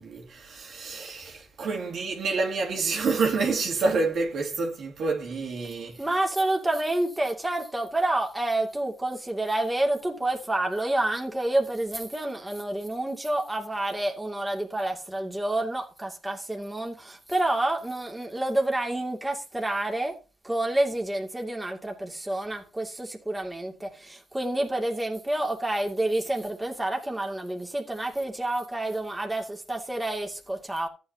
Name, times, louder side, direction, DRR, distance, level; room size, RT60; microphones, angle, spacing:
voice 1, 0.0-6.2, right 4 dB, 65° right, 2.7 m, -28 dB
voice 2, 6.0-20.1 20.4-30.9, right 1 dB, 10° right, 2.4 m, -28 dB
14.0 x 9.0 x 2.8 m
cardioid pair, 90°, 0 cm